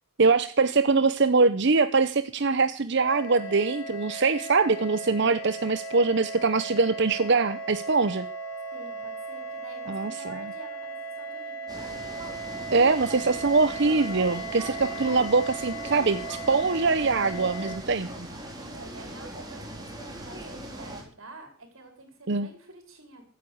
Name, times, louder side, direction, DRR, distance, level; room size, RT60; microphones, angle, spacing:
voice 1, 0.2-8.3 9.9-10.1 12.7-18.3 22.3-22.5, right 4 dB, 55° right, 12 dB, 0.8 m, -23 dB
sound 1, 3.0-17.8, right 2 dB, 70° left, 3.8 m, -37 dB
voice 2, 8.7-12.0 14.7-14.8 18.6-23.2, right 2 dB, 70° right, 5 dB, 5.0 m, -48 dB
sound 2, 11.7-21.0, right 1 dB, 20° right, 3.9 m, -40 dB
15.5 x 9.5 x 8.0 m, 0.42 s
head